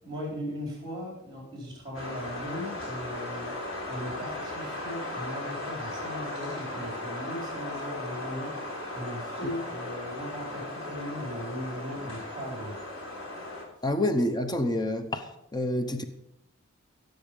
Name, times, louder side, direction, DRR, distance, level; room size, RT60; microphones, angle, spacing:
voice 1, 0.0-3.5 3.9-8.5 8.9-12.8, equal, 20° right, -3 dB, 4.9 m, -38 dB
sound 1, 1.9-13.6, left 2 dB, 85° left, 3.5 m, -37 dB
voice 2, 13.8-15.2 15.5-16.0, left 1 dB, 20° left, 8 dB, 0.9 m, -27 dB
15.5 x 7.8 x 5.5 m, 0.84 s
head